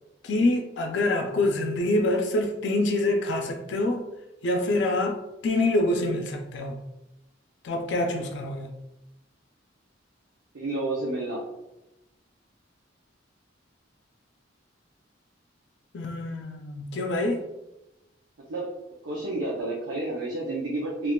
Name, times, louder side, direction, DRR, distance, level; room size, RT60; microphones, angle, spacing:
voice 1, 0.2-4.1 4.4-6.8 7.6-8.7 15.9-17.4, left 2 dB, 65° left, 3 dB, 0.4 m, -26 dB
voice 2, 10.5-11.4 18.5-18.7 19.0-21.1, right 2 dB, 90° right, -4 dB, 0.6 m, -30 dB
3.6 x 2.4 x 2.2 m, 0.93 s
head